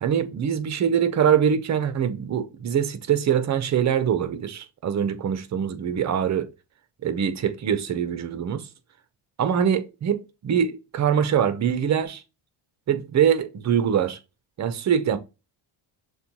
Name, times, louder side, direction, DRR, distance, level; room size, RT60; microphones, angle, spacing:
voice 1, 0.0-6.5 7.0-8.7 9.4-12.2 12.9-14.2 14.6-15.2, right 8 dB, 35° right, 0.7 m, -23 dB
6.6 x 2.3 x 2.9 m
cardioid pair, 105°, 48 cm